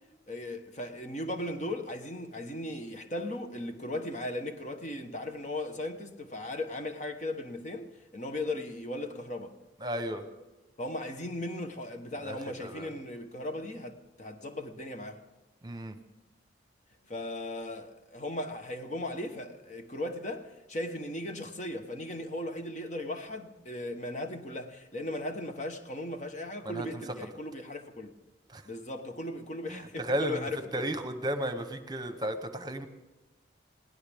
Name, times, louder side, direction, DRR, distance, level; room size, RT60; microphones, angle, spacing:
voice 1, 0.3-9.6 10.8-15.2 17.1-28.1 28.6-30.6, left 1 dB, 40° left, 1.2 m, -37 dB
voice 2, 9.8-10.2 12.2-12.9 15.6-16.0 26.6-26.9 28.5-28.6 29.7-32.9, right 1 dB, 25° right, 1.0 m, -34 dB
21.5 x 17.5 x 3.6 m
head